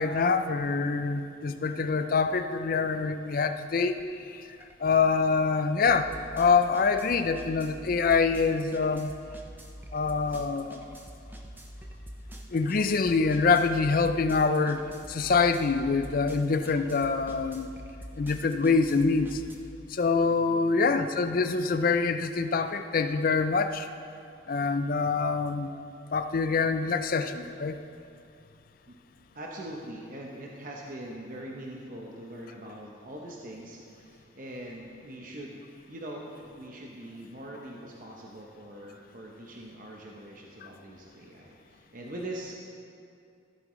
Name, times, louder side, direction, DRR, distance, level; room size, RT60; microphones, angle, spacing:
voice 1, 0.0-4.0 4.3-4.4 4.8-9.1 9.9-10.9 12.5-14.8 15.1-17.7 18.2-19.4 19.9-23.9 24.5-25.7 26.1-27.8, left 4 dB, 45° left, 9 dB, 0.4 m, -25 dB
sound 1, 3.9-4.0 4.4-19.5, equal, 10° right, 0.6 m, -45 dB
voice 2, 20.4-20.8 28.9-29.0 29.3-35.6 35.9-42.5, right 1 dB, 45° right, -1 dB, 0.8 m, -42 dB
14.5 x 8.3 x 3.1 m, 2.4 s
head